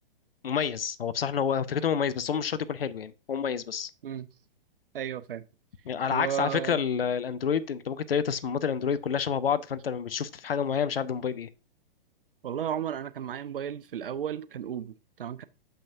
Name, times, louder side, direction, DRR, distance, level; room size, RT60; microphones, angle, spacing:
voice 1, 0.4-3.9 5.9-11.5, left 7 dB, 80° left, 0.5 m, -28 dB
voice 2, 4.9-5.5 6.1-6.8 12.4-15.4, right 9 dB, 70° right, 0.5 m, -34 dB
6.9 x 5.6 x 2.6 m
figure-of-eight pair, 115°, 29 cm